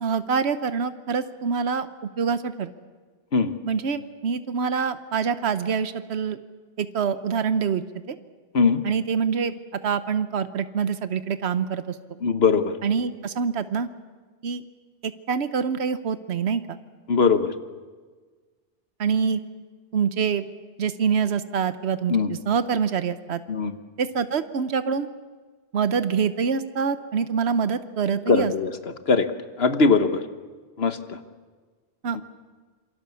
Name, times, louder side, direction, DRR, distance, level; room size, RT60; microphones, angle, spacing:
voice 1, 0.0-1.9 2.2-2.7 3.6-6.4 6.8-8.2 8.8-9.5 9.8-11.9 12.8-13.9 14.4-14.6 15.0-16.8 19.0-19.4 19.9-20.5 20.8-23.4 24.0-25.1 25.7-28.5 32.0-32.2, right 6 dB, 85° right, 12 dB, 1.2 m, -25 dB
voice 2, 12.2-12.8 17.1-17.5 22.1-22.3 23.5-23.7 28.3-28.7 29.1-29.3 29.6-30.2 30.8-31.2 32.1-32.2, left 4 dB, 75° left, 10 dB, 1.5 m, -20 dB
27.5 x 24.0 x 7.0 m, 1.4 s
omnidirectional pair, 1.1 m